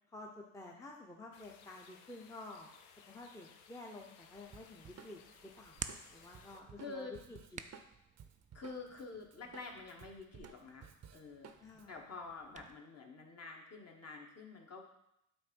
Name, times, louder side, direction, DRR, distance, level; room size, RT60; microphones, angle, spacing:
voice 1, 0.1-2.7 3.1-7.6 11.6-12.0, left 2 dB, 10° left, -1 dB, 0.8 m, -51 dB
sound 1, 1.3-6.6, left 7 dB, 85° left, 0.7 m, -61 dB
Hands, 4.3-12.7, right 6 dB, 20° right, 0.3 m, -53 dB
Drum kit, 4.5-9.0 9.3-11.9, right 7 dB, 40° right, 0.7 m, -56 dB
voice 2, 6.8-7.1 8.5-11.5 11.9-14.8, left 3 dB, 40° left, 1 dB, 1.5 m, -48 dB
7.8 x 2.8 x 5.3 m, 0.81 s
supercardioid pair, 75°, 40 cm